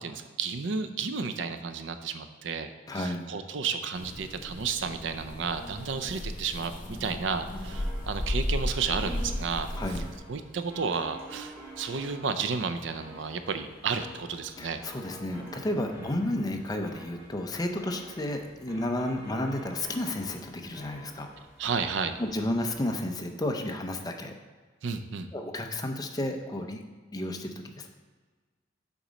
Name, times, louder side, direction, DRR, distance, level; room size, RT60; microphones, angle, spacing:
voice 1, 0.0-9.7 10.3-14.8 16.0-16.1 21.6-22.2 24.8-25.3, right 5 dB, 70° right, 9 dB, 0.5 m, -32 dB
voice 2, 2.9-3.3 9.8-10.1 14.6-21.3 22.2-24.3 25.3-26.8 27.1-27.9, left 1 dB, 20° left, 4 dB, 0.6 m, -32 dB
sound 1, 3.9-10.2, left 1 dB, 45° left, 0.9 m, -34 dB
sound 2, 6.7-23.0, equal, 15° right, 2.3 m, -49 dB
7.2 x 4.1 x 5.0 m, 1.4 s
head